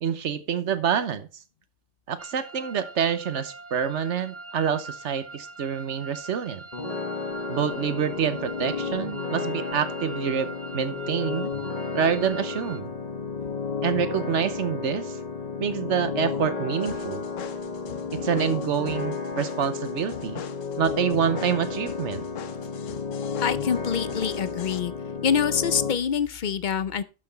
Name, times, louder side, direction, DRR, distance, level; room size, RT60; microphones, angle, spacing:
voice 1, 0.0-1.3 2.1-6.6 7.5-11.5 11.9-12.9 13.8-15.1 15.6-17.3 18.1-20.4 20.8-22.2, right 8 dB, 70° right, 1.2 m, -27 dB
sound 1, 2.2-12.8, right 3 dB, 15° right, 0.7 m, -42 dB
sound 2, 6.7-25.9, left 5 dB, 35° left, 1.2 m, -32 dB
sound 3, 16.8-24.8, left 10 dB, 85° left, 1.0 m, -43 dB
voice 2, 23.4-24.9 25.2-27.0, left 7 dB, 55° left, 0.6 m, -25 dB
11.5 x 5.8 x 4.1 m
omnidirectional pair, 1.3 m